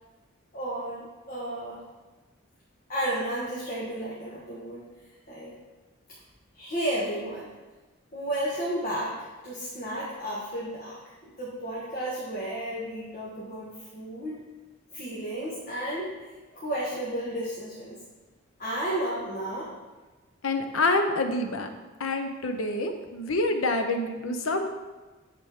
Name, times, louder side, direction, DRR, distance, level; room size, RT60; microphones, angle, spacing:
voice 1, 0.5-1.8 2.9-4.8 5.3-5.5 6.5-7.5 8.1-11.0 11.2-14.4 14.9-18.0 18.6-19.7, right 1 dB, 40° left, -7 dB, 1.4 m, -33 dB
voice 2, 20.4-21.7 22.0-24.7, left 2 dB, 90° left, 6 dB, 0.8 m, -27 dB
10.5 x 4.2 x 3.6 m, 1.2 s
head